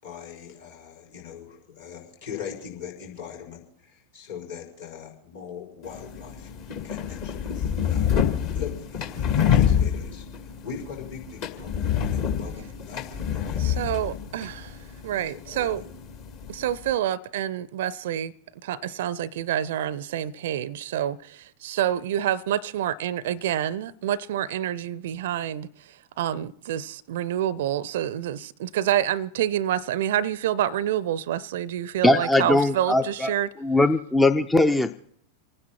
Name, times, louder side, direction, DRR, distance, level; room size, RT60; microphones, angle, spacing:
voice 1, 0.0-6.5 6.8-8.1 8.5-13.8 15.1-15.9, left 7 dB, 60° left, 5.6 m, -41 dB
sound 1, 5.8-16.9, left 9 dB, 45° left, 2.0 m, -27 dB
voice 2, 13.6-14.8 15.0-15.8 16.5-18.3 18.6-33.5, right 11 dB, 55° right, 0.5 m, -28 dB
voice 3, 32.0-33.3 33.6-34.9, left 2 dB, 10° left, 0.5 m, -20 dB
28.0 x 9.8 x 4.4 m
figure-of-eight pair, 90°, 0 cm